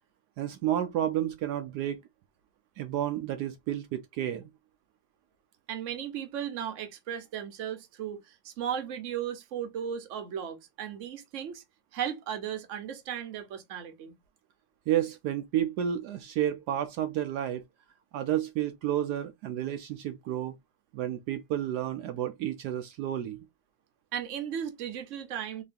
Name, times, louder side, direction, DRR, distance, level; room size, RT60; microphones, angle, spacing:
voice 1, 0.4-2.0 2.8-4.5 14.9-17.6 18.1-20.6 20.9-23.4, right 11 dB, 75° right, 1.1 m, -31 dB
voice 2, 5.7-11.6 11.9-14.1 24.1-25.6, right 9 dB, 55° right, 1.1 m, -36 dB
4.0 x 3.1 x 2.6 m
omnidirectional pair, 1.8 m